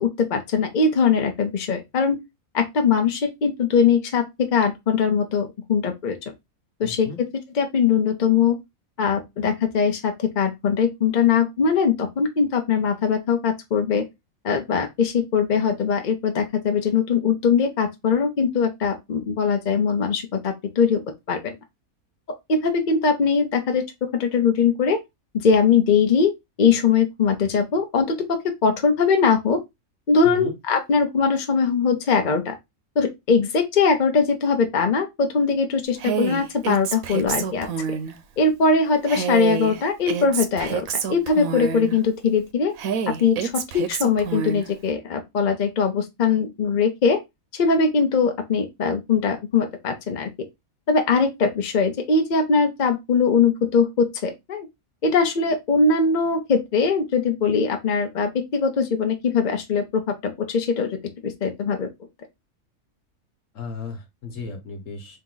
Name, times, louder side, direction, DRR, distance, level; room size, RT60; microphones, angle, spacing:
voice 1, 0.0-2.2 2.5-6.2 6.8-7.1 7.5-8.6 9.0-14.0 14.4-21.0 21.3-21.5 22.5-25.0 25.4-26.3 26.6-29.6 30.1-32.5 33.0-37.7 38.4-42.7 43.2-47.2 47.5-50.3 50.9-54.7 55.0-61.9, left 5 dB, 45° left, 0.6 m, -21 dB
voice 2, 6.8-7.2 30.2-30.5 63.5-65.2, left 4 dB, 65° left, 1.4 m, -35 dB
Female speech woman speaking, 36.0-38.1 39.1-42.0 42.8-44.7, right 7 dB, 75° right, 1.1 m, -28 dB
3.7 x 2.9 x 3.7 m
omnidirectional pair, 1.5 m